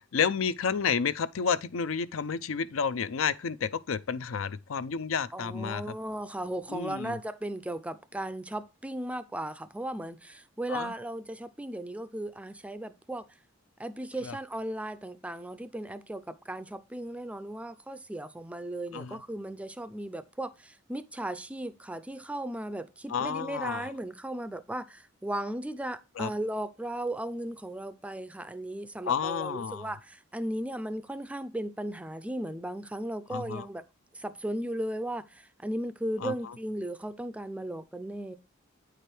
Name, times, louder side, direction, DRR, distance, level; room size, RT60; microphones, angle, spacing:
voice 1, 0.1-5.9 6.7-7.2 10.7-10.9 14.2-14.4 18.9-19.2 23.1-23.9 26.2-26.3 29.1-29.9 33.3-33.7 36.2-36.3, left 6 dB, 75° left, 0.5 m, -30 dB
voice 2, 5.3-13.3 13.8-33.8 34.1-38.4, right 1 dB, 5° right, 0.4 m, -36 dB
9.0 x 4.9 x 4.4 m
head